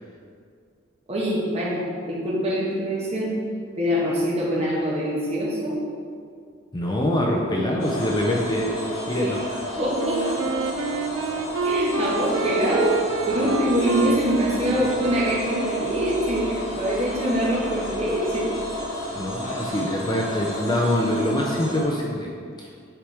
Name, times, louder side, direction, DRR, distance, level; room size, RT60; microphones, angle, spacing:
voice 1, 1.1-1.8 2.1-3.3 3.8-5.8 9.1-9.2 9.8-10.2 11.6-13.0 13.3-18.5, equal, 30° right, -5 dB, 1.5 m, -24 dB
voice 2, 6.7-9.4 19.2-22.3 22.6-22.7, left 1 dB, 20° left, -1 dB, 0.5 m, -24 dB
sound 1, 7.8-21.8, left 1 dB, 75° left, 1.8 m, -32 dB
Wind instrument woodwind instrument, 10.0-16.6, right 5 dB, 75° right, 0.4 m, -28 dB
8.8 x 4.8 x 3.5 m, 2.2 s
head